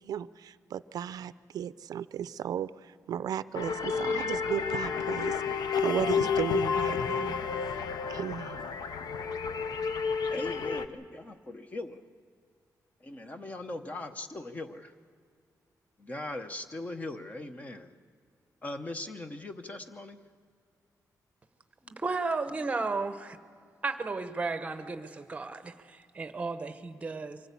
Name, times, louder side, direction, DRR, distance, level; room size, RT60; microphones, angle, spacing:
voice 1, 0.0-7.4 8.1-8.6, right 9 dB, 75° right, 15 dB, 0.4 m, -35 dB
sound 1, 3.5-10.9, left 6 dB, 80° left, 0.8 m, -30 dB
voice 2, 10.3-12.0 13.0-14.9 16.0-17.9 18.6-20.2, left 2 dB, 25° left, 8 dB, 0.8 m, -40 dB
voice 3, 21.8-23.4 23.8-27.4, right 3 dB, 20° right, 9 dB, 0.9 m, -34 dB
24.5 x 15.5 x 8.3 m, 2.2 s
wide cardioid pair, 180°, 6 cm